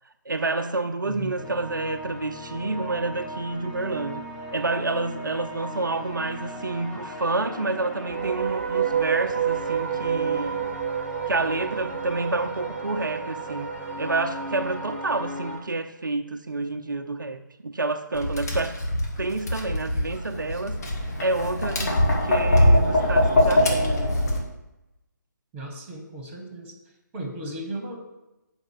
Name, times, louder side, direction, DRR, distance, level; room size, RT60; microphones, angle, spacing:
voice 1, 0.3-4.2 4.5-10.7 11.3-13.7 14.0-18.8 19.2-20.8 21.2-24.2, right 3 dB, 75° right, 6 dB, 0.6 m, -29 dB
voice 2, 1.0-1.4 25.5-26.8 27.1-28.0, right 1 dB, 15° right, 2 dB, 1.5 m, -36 dB
sound 1, 1.4-15.6, equal, 10° left, 0.9 m, -37 dB
sound 2, 8.0-15.3, right 9 dB, 40° right, 0.4 m, -29 dB
Tap, 18.1-24.4, left 1 dB, 50° left, 1.9 m, -22 dB
7.3 x 5.2 x 6.7 m, 0.96 s
figure-of-eight pair, 145°, 11 cm